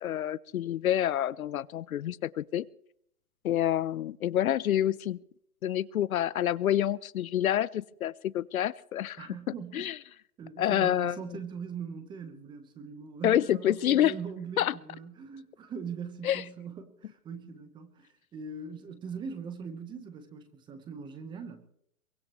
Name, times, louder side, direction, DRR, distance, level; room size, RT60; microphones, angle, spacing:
voice 1, 0.0-2.7 3.4-5.2 5.6-9.3 9.7-9.9 10.6-11.2 13.2-14.1 14.6-14.7 16.2-16.4, left 11 dB, 70° left, 20 dB, 0.7 m, -27 dB
voice 2, 9.2-9.9 10.4-21.7, right 6 dB, 10° right, 9 dB, 1.1 m, -41 dB
23.5 x 18.5 x 3.1 m, 0.69 s
hypercardioid pair, 150°, 45 cm